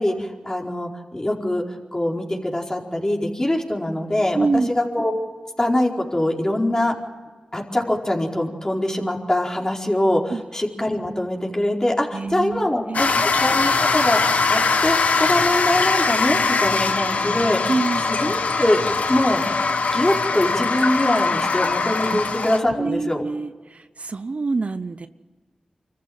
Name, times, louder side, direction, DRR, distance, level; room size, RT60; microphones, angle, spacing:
voice 1, 0.0-1.6 1.9-5.1 5.6-6.9 7.5-17.7 18.1-18.8 19.1-19.4 19.9-23.2, left 1 dB, 25° left, 0 dB, 4.6 m, -23 dB
voice 2, 4.3-4.7 10.3-10.4 12.1-13.3 17.7-18.0 22.1-22.2 22.8-25.1, right 3 dB, 60° right, 11 dB, 0.8 m, -26 dB
sound 1, 12.9-22.6, left 4 dB, 80° left, 1.4 m, -21 dB
25.5 x 14.5 x 7.9 m, 1.3 s
cardioid pair, 45°, 2 cm